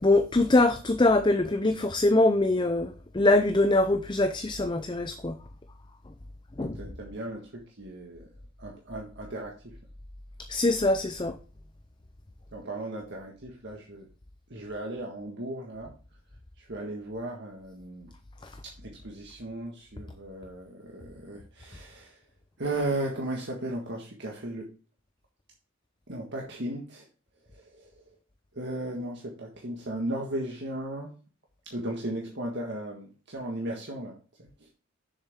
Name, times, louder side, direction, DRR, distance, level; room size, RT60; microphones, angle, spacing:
voice 1, 0.0-5.3 6.6-6.8 10.5-11.3, left 2 dB, 20° left, 0.5 m, -23 dB
voice 2, 6.6-8.3 8.6-9.8 12.5-14.1 14.5-15.9 16.6-18.1 18.6-22.3 22.6-24.7 26.1-27.1 27.5-28.2 28.5-31.1 31.7-34.7, right 1 dB, 55° right, 1.5 m, -36 dB
7.3 x 6.7 x 3.6 m
head